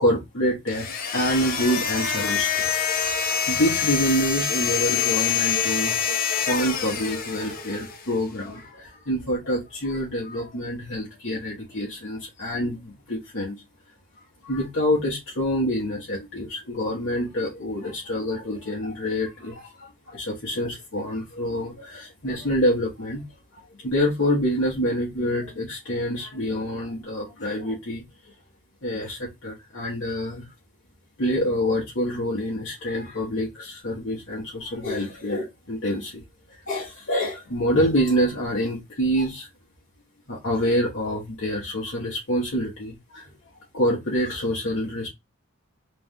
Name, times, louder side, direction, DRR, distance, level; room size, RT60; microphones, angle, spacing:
voice 1, 0.0-13.6 14.4-23.2 23.5-28.0 28.8-30.5 31.2-36.2 36.7-39.5 40.3-43.3 43.7-45.1, equal, 60° left, 1.3 m, -27 dB
sound 1, 0.7-8.0, left 7 dB, 40° left, 0.7 m, -26 dB
3.4 x 3.2 x 3.6 m
head